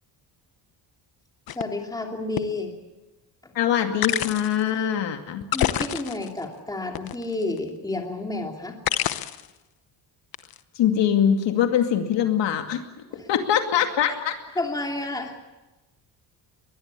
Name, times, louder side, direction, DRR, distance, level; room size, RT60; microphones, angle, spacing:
sound 1, 1.5-1.6 2.4-2.5 4.0-4.6 5.4-6.4 6.9-7.6 8.9-9.5 10.3-10.6, left 12 dB, 55° left, 0.9 m, -27 dB
voice 1, 1.5-2.7 3.4-3.5 5.5-8.8 13.1-13.4 14.6-15.3, left 2 dB, 10° left, 2 dB, 2.9 m, -30 dB
voice 2, 3.5-5.4 10.8-12.8 13.3-14.3, left 9 dB, 75° left, 5 dB, 2.5 m, -23 dB
21.5 x 21.0 x 8.4 m, 1.1 s
cardioid pair, 165°, 43 cm